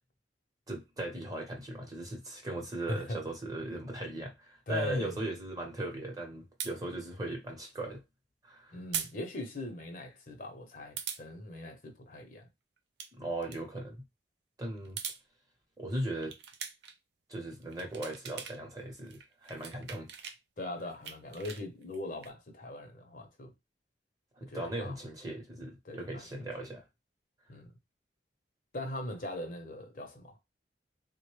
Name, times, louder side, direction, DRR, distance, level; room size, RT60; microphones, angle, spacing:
voice 1, 0.7-8.0 8.4-8.8 13.1-14.0 14.6-15.0 15.8-16.3 17.3-20.1 24.4-26.9, right 1 dB, 20° right, 0.9 m, -38 dB
voice 2, 2.8-3.2 4.7-5.2 8.7-12.5 20.6-23.5 24.4-25.0 25.8-26.5 27.5-27.7 28.7-30.4, left 1 dB, 50° left, 0.8 m, -40 dB
sound 1, 6.6-6.7 8.9-9.1 9.5-9.6 11.0-11.2 12.8-13.1 13.4-13.6 14.8-15.2 16.2-17.0 17.5-18.6 18.9-20.4 20.8-22.3, right 8 dB, 75° right, 0.5 m, -41 dB
3.8 x 2.2 x 3.2 m
head